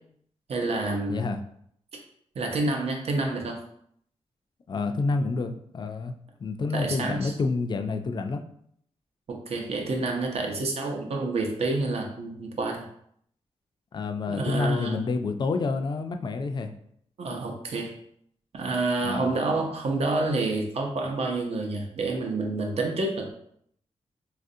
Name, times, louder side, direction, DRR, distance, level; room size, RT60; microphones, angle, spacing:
voice 1, 0.5-1.3 1.9-2.0 2.4-3.6 6.7-7.3 9.3-12.8 14.3-15.0 17.2-17.9 18.5-23.3, right 2 dB, 60° right, 2 dB, 0.7 m, -28 dB
voice 2, 4.7-6.1 6.4-8.4 13.9-16.7 19.0-19.3, left 3 dB, 40° left, 6 dB, 0.3 m, -28 dB
4.1 x 2.4 x 2.6 m, 0.68 s
wide cardioid pair, 100°, 12 cm